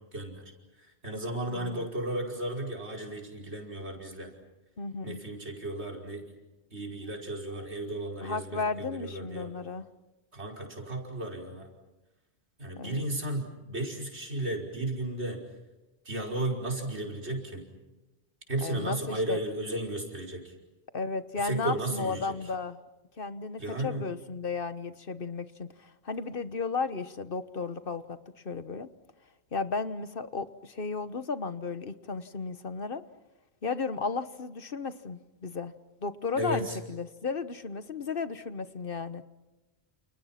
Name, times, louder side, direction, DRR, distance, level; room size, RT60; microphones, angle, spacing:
voice 1, 0.1-0.4 1.0-4.3 5.0-6.2 6.7-9.5 10.3-11.7 12.6-15.4 16.1-17.6 18.5-20.5 21.4-22.3 23.6-24.0 36.4-36.8, right 1 dB, 85° right, 1 dB, 5.6 m, -34 dB
voice 2, 1.5-1.9 4.8-5.2 8.2-9.9 12.8-13.0 18.6-19.4 20.9-22.8 23.2-28.2 28.4-28.9 29.5-33.0 33.6-35.7 36.0-39.2, left 4 dB, 55° left, 12 dB, 1.3 m, -34 dB
30.0 x 29.5 x 5.9 m, 1.1 s
omnidirectional pair, 1.1 m